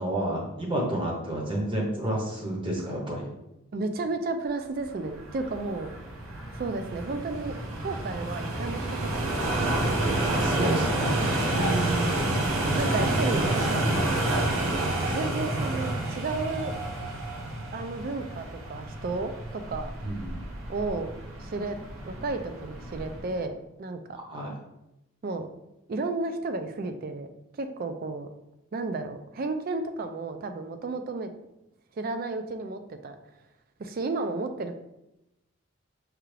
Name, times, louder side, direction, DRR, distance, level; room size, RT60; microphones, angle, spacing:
voice 1, 0.0-3.3 10.2-11.3 20.0-20.5 24.3-24.5, right 1 dB, 25° right, -1 dB, 0.7 m, -30 dB
voice 2, 3.7-5.9 6.5-8.8 9.1-9.8 11.6-12.4 12.8-13.5 15.1-16.7 17.7-19.9 20.7-21.1 21.4-21.8 22.1-24.0 25.2-25.5 25.9-27.3 27.6-28.3 28.7-31.3 32.0-33.2 33.8-34.7, right 3 dB, 45° right, 8 dB, 0.3 m, -32 dB
sound 1, 5.0-23.3, right 1 dB, 80° right, 0.8 m, -29 dB
4.7 x 2.4 x 3.2 m, 0.90 s
head